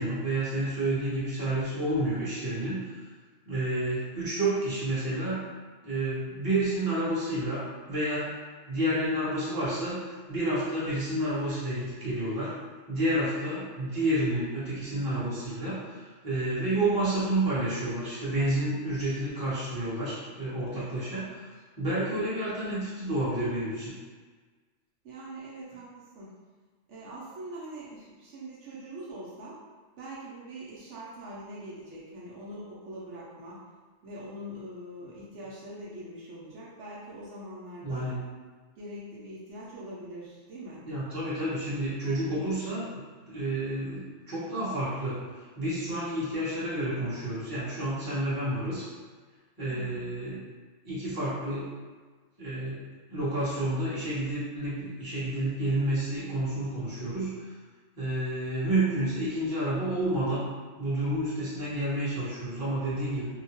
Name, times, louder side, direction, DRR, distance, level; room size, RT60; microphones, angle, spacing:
voice 1, 0.0-3.0 3.4-5.4 5.8-8.3 8.7-12.5 12.9-21.5 21.8-23.9 37.8-38.2 40.8-45.1 45.5-48.9 49.6-50.4 50.8-51.6 52.4-52.8 53.1-57.5 58.0-60.5 60.8-63.3, right 1 dB, 20° right, -11 dB, 1.0 m, -30 dB
voice 2, 25.0-26.3 26.9-29.6 30.0-33.6 34.0-38.1 38.8-40.8 49.7-50.0, right 1 dB, 75° right, -7 dB, 1.0 m, -43 dB
2.8 x 2.1 x 2.9 m, 1.4 s
omnidirectional pair, 1.2 m